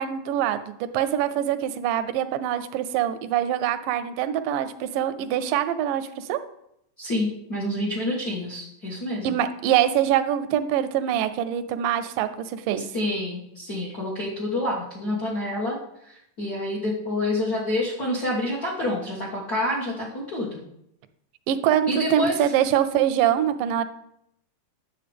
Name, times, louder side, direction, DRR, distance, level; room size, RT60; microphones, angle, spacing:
voice 1, 0.0-6.4 9.2-12.8 21.5-23.8, right 10 dB, 85° right, 11 dB, 2.2 m, -24 dB
voice 2, 7.0-9.4 12.8-15.8 16.0-20.6 21.9-22.5, left 1 dB, 60° left, -5 dB, 0.9 m, -28 dB
10.0 x 7.4 x 3.4 m, 0.77 s
omnidirectional pair, 3.8 m